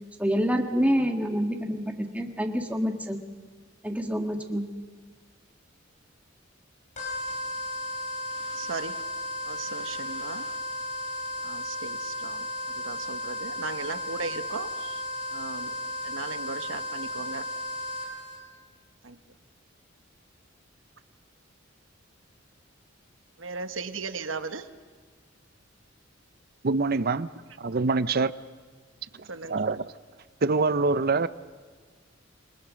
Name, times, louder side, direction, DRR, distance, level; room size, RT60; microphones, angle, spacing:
voice 1, 0.2-3.2 3.8-4.7, equal, 5° right, 4 dB, 1.7 m, -27 dB
sound 1, 7.0-18.4, left 1 dB, 40° left, 5.6 m, -34 dB
voice 2, 8.5-9.0 9.5-10.5 11.4-12.4 12.8-15.0 15.3-15.7 16.0-17.4 19.0-19.2 23.4-24.6 29.3-29.8, right 4 dB, 75° right, 9 dB, 1.3 m, -37 dB
voice 3, 26.6-27.3 27.6-28.3 29.5-29.9 30.4-31.3, right 3 dB, 50° right, 15 dB, 0.7 m, -24 dB
28.0 x 20.5 x 6.3 m, 1.5 s
head